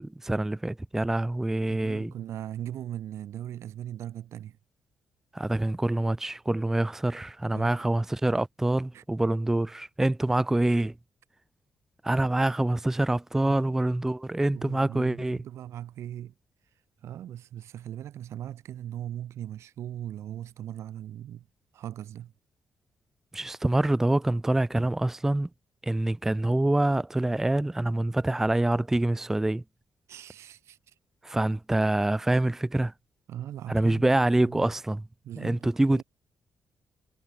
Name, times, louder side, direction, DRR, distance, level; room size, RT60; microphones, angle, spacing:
voice 1, 0.0-2.1 5.3-10.9 12.0-15.4 23.3-25.5 25.8-29.6 31.2-32.9 33.7-35.1 35.4-36.0, right 1 dB, 10° right, 0.5 m, -26 dB
voice 2, 1.7-4.6 7.5-7.9 8.9-9.0 14.5-16.3 17.0-21.5 21.7-22.3 30.1-30.9 33.3-34.1 34.4-34.7 35.2-36.0, right 11 dB, 80° right, 6.9 m, -39 dB
cardioid pair, 150°, 5 cm